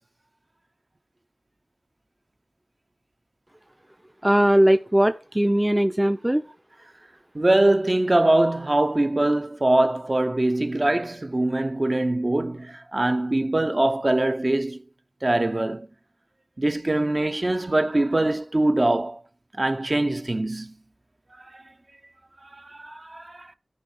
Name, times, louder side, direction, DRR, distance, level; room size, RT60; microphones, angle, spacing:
voice 1, 4.2-6.4, right 1 dB, 15° right, 0.6 m, -19 dB
voice 2, 7.3-14.8 15.2-15.9 16.6-19.2 19.6-20.7 21.4-21.6 22.4-23.5, right 1 dB, 45° right, 0.9 m, -23 dB
13.5 x 5.4 x 5.0 m
wide cardioid pair, 55°, 0 cm